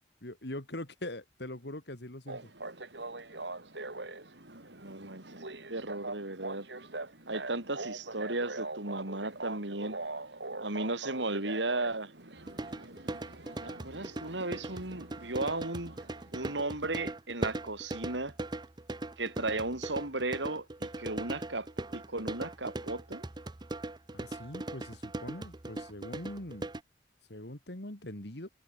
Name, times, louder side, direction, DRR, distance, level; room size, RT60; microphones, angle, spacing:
voice 1, 0.2-2.5 24.1-26.7 27.3-28.5, left 1 dB, 65° left, 3.2 m, -42 dB
sound 1, 2.3-16.6, right 2 dB, 75° right, 4.8 m, -43 dB
voice 2, 4.8-5.4 5.7-6.7 7.3-10.0 10.6-12.1 13.6-16.0 16.3-18.3 19.2-23.2, right 2 dB, 90° right, 5.4 m, -35 dB
sound 2, 12.5-26.8, right 2 dB, 25° right, 0.7 m, -39 dB
head